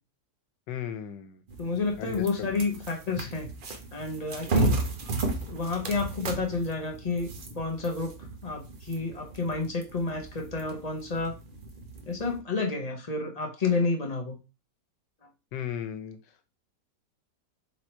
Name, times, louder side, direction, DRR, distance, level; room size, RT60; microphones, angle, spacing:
voice 1, 0.7-1.4 2.0-2.5 15.5-16.2, left 9 dB, 85° left, 10 dB, 1.4 m, -36 dB
sound 1, 1.5-12.4, right 2 dB, 55° right, 0.6 m, -34 dB
voice 2, 1.6-3.5 3.9-4.8 5.5-8.2 8.4-11.4 12.1-14.4, left 4 dB, 35° left, 3 dB, 0.6 m, -30 dB
3.8 x 3.0 x 4.3 m, 0.28 s
omnidirectional pair, 1.8 m